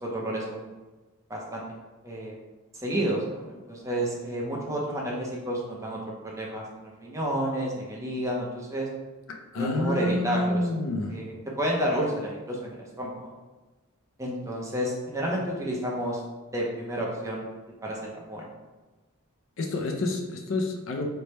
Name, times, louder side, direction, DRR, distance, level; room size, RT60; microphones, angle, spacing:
voice 1, 0.0-0.7 1.3-1.6 2.0-2.4 2.7-6.0 6.2-8.9 9.5-10.6 11.1-13.2 14.2-16.2 16.5-17.4 17.8-18.5, right 1 dB, 15° right, -3 dB, 0.5 m, -30 dB
voice 2, 9.3-11.2 19.6-21.1, left 2 dB, 60° left, 2 dB, 0.4 m, -28 dB
3.3 x 2.1 x 4.1 m, 1.2 s
head